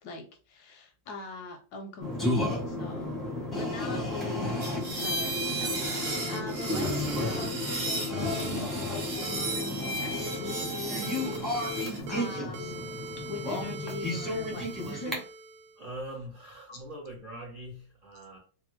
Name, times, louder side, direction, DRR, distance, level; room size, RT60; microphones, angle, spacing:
voice 1, 0.0-3.2 3.5-4.6 4.9-12.9 13.3-15.3 16.7-16.8, left 3 dB, 75° left, 0.9 m, -41 dB
sound 1, 2.0-15.1, left 1 dB, ahead, 0.4 m, -33 dB
sound 2, 4.6-12.0, right 2 dB, 50° right, 1.0 m, -35 dB
sound 3, 6.1-6.4 7.1-7.4 8.1-8.5 9.2-9.5 10.3-10.6 11.0-11.8 12.1-15.8, right 2 dB, 90° right, 1.4 m, -41 dB
voice 2, 15.8-18.4, right 1 dB, 75° right, 0.4 m, -42 dB
3.3 x 2.2 x 3.1 m
omnidirectional pair, 2.1 m